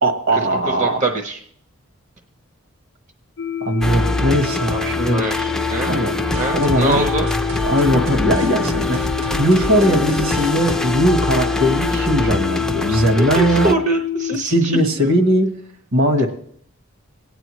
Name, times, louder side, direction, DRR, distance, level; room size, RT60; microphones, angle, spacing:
voice 1, 0.0-1.0 3.6-5.3 5.8-6.1 6.5-7.0 7.6-9.0 9.4-13.8 14.5-15.5 15.9-16.3, equal, 65° right, 5 dB, 1.4 m, -19 dB
voice 2, 0.8-1.4 4.7-6.0 6.3-7.3 13.1-15.1, right 2 dB, 35° right, 3 dB, 0.8 m, -24 dB
sound 1, 3.4-14.4, left 10 dB, 55° left, 0.4 m, -26 dB
sound 2, 3.8-13.8, left 1 dB, ahead, 0.5 m, -24 dB
sound 3, 6.3-11.8, equal, 85° right, 1.3 m, -32 dB
21.0 x 9.1 x 3.1 m, 0.64 s
head